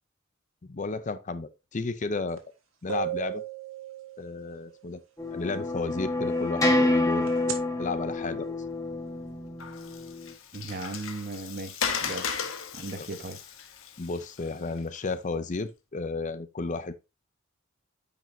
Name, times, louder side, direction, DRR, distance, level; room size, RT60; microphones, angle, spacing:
voice 1, 0.7-2.4 2.8-3.4 4.2-5.0 5.3-8.6 13.0-13.1 14.0-16.9, left 3 dB, 40° left, 0.6 m, -33 dB
sound 1, 2.4-2.5 2.9-4.6 7.3-7.5, right 10 dB, 85° right, 1.5 m, -34 dB
sound 2, 5.2-10.3, left 2 dB, 15° left, 1.4 m, -28 dB
Water, 9.6-15.0, left 6 dB, 75° left, 1.1 m, -36 dB
voice 2, 10.5-12.3 12.7-13.4, right 2 dB, 50° right, 1.1 m, -37 dB
8.9 x 5.4 x 2.7 m
head